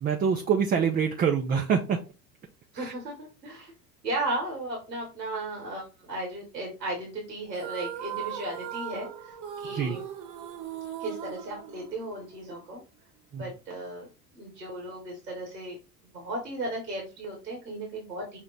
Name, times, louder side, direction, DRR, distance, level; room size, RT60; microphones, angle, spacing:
voice 1, 0.0-2.0 2.8-2.9 9.7-10.0 13.3-13.5, right 7 dB, 20° right, 2 dB, 0.4 m, -25 dB
voice 2, 2.7-3.7 4.0-10.1 11.0-12.8 13.4-14.1 14.3-15.8 16.1-18.4, right 1 dB, 85° right, 0 dB, 1.2 m, -35 dB
sound 1, 7.5-12.4, right 9 dB, 45° right, 0.8 m, -38 dB
5.7 x 2.1 x 3.9 m, 0.31 s
figure-of-eight pair, 70°, 49 cm